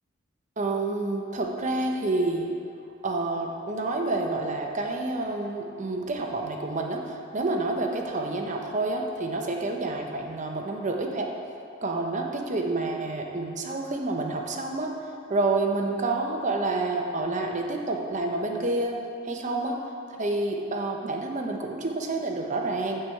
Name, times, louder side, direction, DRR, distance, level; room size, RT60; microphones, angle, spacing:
voice 1, 0.6-2.5 3.0-11.3 11.8-14.9 15.3-19.0 19.2-19.8 20.1-23.0, right 2 dB, 40° right, 1 dB, 0.8 m, -28 dB
6.9 x 6.7 x 4.5 m, 2.6 s
head